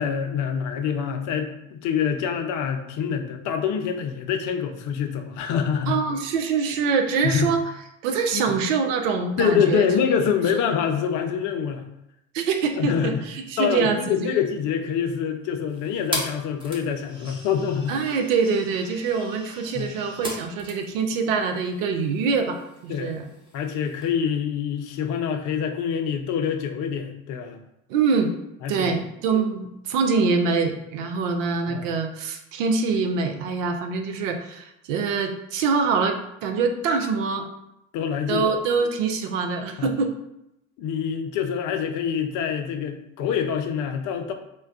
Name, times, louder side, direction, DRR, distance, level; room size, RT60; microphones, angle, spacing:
voice 1, 0.0-6.0 7.2-7.5 8.3-8.6 9.4-11.9 12.8-13.3 13.6-18.0 19.7-19.9 22.9-23.1 23.5-27.6 28.6-29.0 31.7-31.9 37.9-38.5 39.8-40.0 40.8-44.3, left 7 dB, 50° left, 6 dB, 0.5 m, -25 dB
voice 2, 5.9-7.6 8.0-9.9 12.3-14.3 17.9-23.2 27.9-28.3 28.7-37.5 38.3-40.1, right 5 dB, 70° right, 6 dB, 0.6 m, -24 dB
sound 1, 15.7-24.1, equal, 10° right, 1.0 m, -39 dB
2.2 x 2.2 x 3.5 m, 0.83 s
hypercardioid pair, 65°, 40 cm